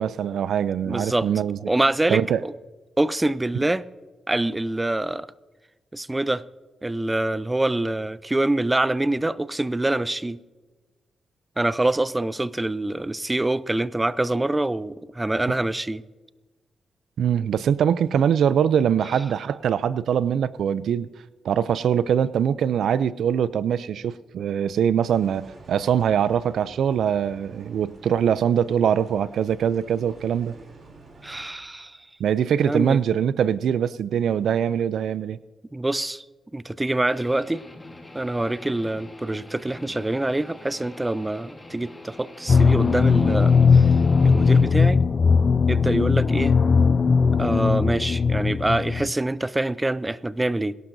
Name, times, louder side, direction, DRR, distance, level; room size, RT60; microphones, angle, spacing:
voice 1, 0.0-1.6 2.1-2.4 17.2-21.1 21.4-30.5 32.2-35.4, right 8 dB, 80° right, 0.3 m, -23 dB
voice 2, 0.8-1.3 1.7-2.5 3.0-3.8 4.3-5.3 5.9-6.4 6.8-10.4 11.6-16.0 31.2-32.0 32.6-33.0 35.7-36.2 36.5-37.6 38.1-43.9 44.2-45.0 45.7-46.6 47.4-50.7, right 2 dB, 20° right, 0.5 m, -25 dB
sound 1, 25.1-31.5, right 2 dB, 55° right, 3.1 m, -48 dB
Guitar, 37.1-44.7, left 2 dB, 15° left, 2.8 m, -44 dB
sound 2, 42.5-49.1, left 5 dB, 50° left, 0.3 m, -18 dB
22.0 x 12.0 x 2.6 m
cardioid pair, 65°, 0 cm